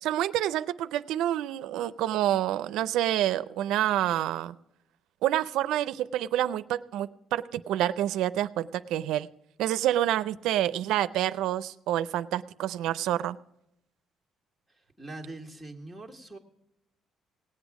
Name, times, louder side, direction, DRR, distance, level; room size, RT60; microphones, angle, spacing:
voice 1, 0.0-4.5 5.2-9.3 9.6-13.4, right 12 dB, 85° right, 13 dB, 0.4 m, -28 dB
voice 2, 14.7-16.4, right 2 dB, ahead, -1 dB, 1.7 m, -43 dB
18.0 x 8.2 x 4.8 m, 0.84 s
cardioid pair, 130°, 0 cm